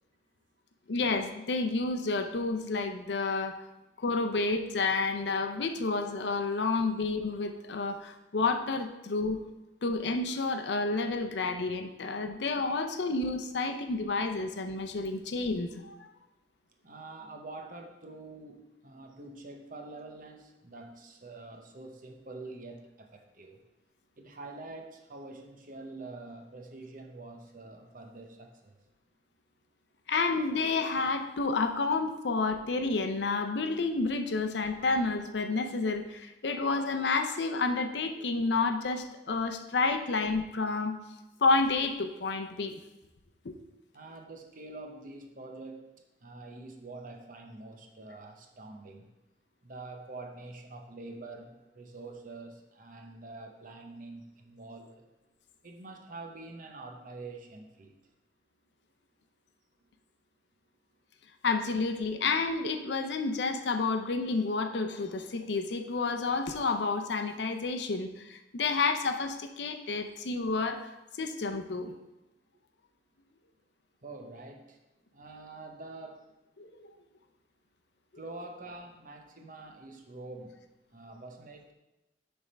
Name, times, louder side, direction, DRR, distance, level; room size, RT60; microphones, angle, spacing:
voice 1, 0.9-3.6 4.0-9.4 9.8-16.1 30.1-40.9 41.4-42.7 43.4-43.6 61.4-71.9 76.6-76.9, left 3 dB, 70° left, 6 dB, 0.6 m, -30 dB
voice 2, 16.8-23.6 24.2-28.8 43.9-45.9 46.2-49.1 49.6-55.0 55.6-58.0 74.0-74.8 75.1-76.3 78.1-80.6 80.9-81.7, right 2 dB, 50° right, 3 dB, 0.8 m, -46 dB
7.1 x 3.5 x 5.3 m, 0.99 s
head